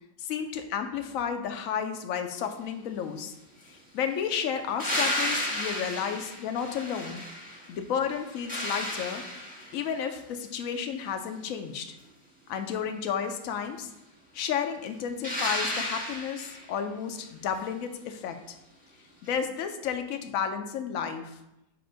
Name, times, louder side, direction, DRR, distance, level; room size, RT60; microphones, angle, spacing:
voice 1, 0.2-3.3 3.7-7.2 7.7-9.2 9.7-11.9 12.5-13.9 14.3-18.4 19.2-21.4, left 7 dB, 65° left, 6 dB, 0.9 m, -32 dB
sound 1, 4.8-7.7 8.1-9.9 15.2-16.7 19.3-19.4, left 1 dB, 5° right, 1.1 m, -32 dB
7.5 x 2.6 x 5.0 m, 0.87 s
omnidirectional pair, 1.7 m